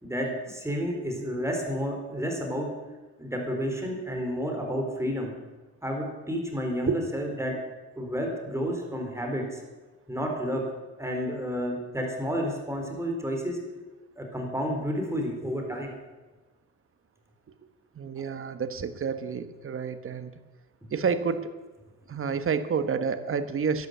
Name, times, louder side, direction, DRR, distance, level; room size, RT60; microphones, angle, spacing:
voice 1, 0.0-2.7 3.2-5.3 5.8-7.5 8.0-9.6 10.1-10.6 11.0-13.6 14.2-15.9, equal, 10° right, 1 dB, 4.1 m, -30 dB
voice 2, 17.9-20.3 20.9-21.5 22.1-23.9, right 6 dB, 45° right, 11 dB, 1.4 m, -29 dB
12.0 x 11.0 x 8.1 m, 1.2 s
cardioid pair, 90°, 30 cm